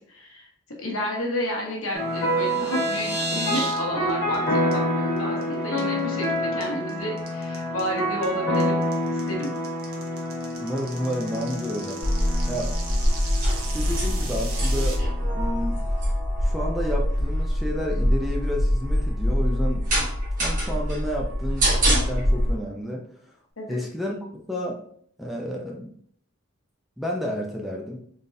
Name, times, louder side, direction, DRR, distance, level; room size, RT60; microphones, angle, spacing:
voice 1, 0.1-0.5 0.8-8.8 9.1-9.5 23.6-23.8, equal, 75° left, 0 dB, 1.2 m, -31 dB
sound 1, 1.9-16.9, left 1 dB, 50° left, 1.4 m, -28 dB
sound 2, 2.1-3.8 4.1-4.4 4.7-4.8 5.2-5.4 5.8-6.2 6.6-14.9, right 3 dB, 75° right, 1.0 m, -36 dB
voice 2, 10.6-12.0 12.5-12.8 13.6-15.0 15.3-15.8 16.4-19.8 20.4-23.0 23.7-24.2 24.5-24.8 25.2-25.9 27.0-28.0, equal, ahead, -2 dB, 0.5 m, -30 dB
sound 3, 12.0-22.5, equal, 40° right, 1.6 m, -24 dB
3.9 x 3.8 x 2.6 m, 0.63 s
head